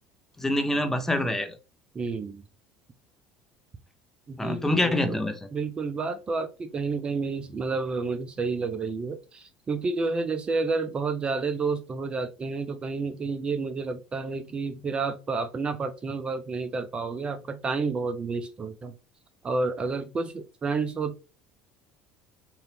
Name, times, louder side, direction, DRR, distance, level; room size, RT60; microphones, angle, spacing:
voice 1, 0.4-1.6 4.4-5.4, left 1 dB, 10° left, 7 dB, 0.8 m, -25 dB
voice 2, 1.9-2.4 4.3-5.2 5.5-18.9 19.4-21.2, right 4 dB, 30° right, 9 dB, 0.5 m, -30 dB
4.1 x 2.5 x 3.4 m, 0.31 s
supercardioid pair, 85°, 3 cm